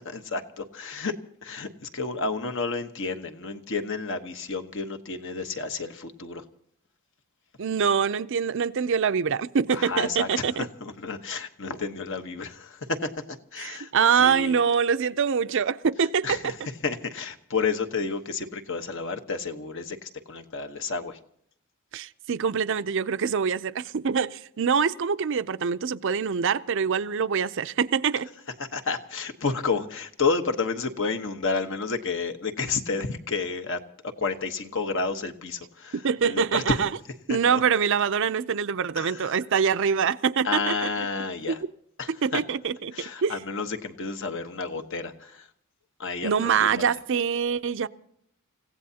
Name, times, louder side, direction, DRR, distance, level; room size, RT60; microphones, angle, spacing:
voice 1, 0.1-1.2 1.4-6.4 9.7-10.3 10.6-13.1 13.5-13.9 14.2-14.6 16.2-16.5 16.8-21.2 28.7-33.8 34.2-36.0 36.2-36.6 37.3-37.6 39.0-39.1 40.4-41.6 42.0-42.4 42.9-45.4 46.0-46.8, left 4 dB, 60° left, 6 dB, 1.1 m, -30 dB
voice 2, 7.6-10.7 13.6-16.5 21.9-28.3 35.9-36.9 37.3-40.9 41.5-41.7 42.2-42.9 43.2-43.4 46.2-47.9, right 6 dB, 55° right, 12 dB, 0.5 m, -24 dB
29.5 x 16.0 x 2.8 m, 0.68 s
head